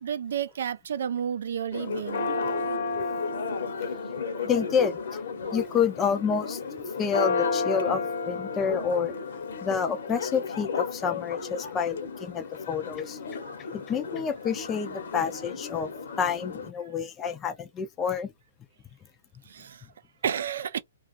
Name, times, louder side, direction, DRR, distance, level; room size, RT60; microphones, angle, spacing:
voice 1, 0.0-2.3 19.5-19.9 20.2-20.8, right 8 dB, 70° right, 0.4 m, -31 dB
Church bell, 1.7-16.7, left 4 dB, 70° left, 0.9 m, -32 dB
voice 2, 4.4-5.0 5.5-6.6 7.0-9.1 9.6-13.2 13.7-15.9 16.2-18.3, left 6 dB, 15° left, 0.5 m, -28 dB
2.4 x 2.3 x 2.4 m
hypercardioid pair, 155°, 0 cm